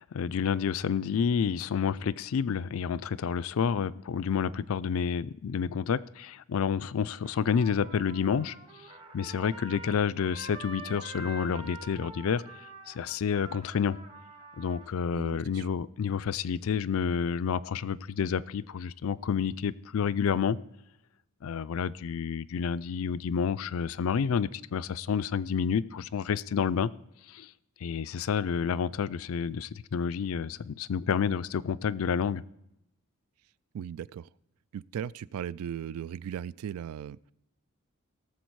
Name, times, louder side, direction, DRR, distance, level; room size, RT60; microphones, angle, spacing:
voice 1, 0.0-8.5 9.1-12.4 12.9-14.0 14.6-20.6 21.4-26.9 27.3-27.5 27.8-32.4, left 7 dB, 75° left, 17 dB, 0.4 m, -29 dB
Trumpet, 7.2-14.9, right 2 dB, 25° right, 0.9 m, -46 dB
voice 2, 15.1-15.7 33.7-34.3 34.7-37.3, right 8 dB, 90° right, 22 dB, 0.3 m, -37 dB
17.5 x 7.2 x 4.6 m, 0.84 s
head